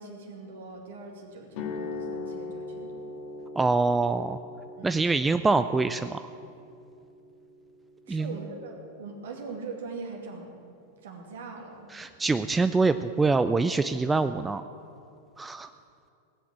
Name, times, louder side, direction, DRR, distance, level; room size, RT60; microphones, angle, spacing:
voice 1, 0.0-3.1 4.8-5.2 8.1-10.6 11.0-11.9, right 4 dB, 60° right, 2 dB, 2.4 m, -41 dB
sound 1, 1.5-9.5, left 3 dB, 45° left, 1.9 m, -41 dB
voice 2, 3.6-4.4 4.8-6.3 8.1-8.4 11.9-14.6 15.4-15.7, right 3 dB, 10° right, 10 dB, 0.4 m, -25 dB
18.0 x 8.5 x 7.8 m, 2.5 s
figure-of-eight pair, 90°, 0 cm